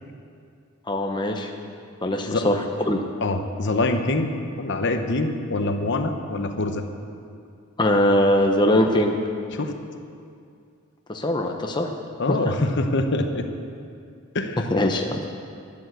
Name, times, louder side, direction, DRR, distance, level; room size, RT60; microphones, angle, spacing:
voice 1, 0.9-1.5 2.0-3.0 7.8-9.1 11.1-11.9 12.3-12.5 14.6-15.2, left 1 dB, 20° left, 2 dB, 0.8 m, -21 dB
voice 2, 3.2-4.3 4.6-6.8 9.5-9.8 12.2-13.5 14.3-14.7, left 2 dB, 55° left, 6 dB, 1.0 m, -24 dB
12.5 x 10.5 x 8.0 m, 2.4 s
head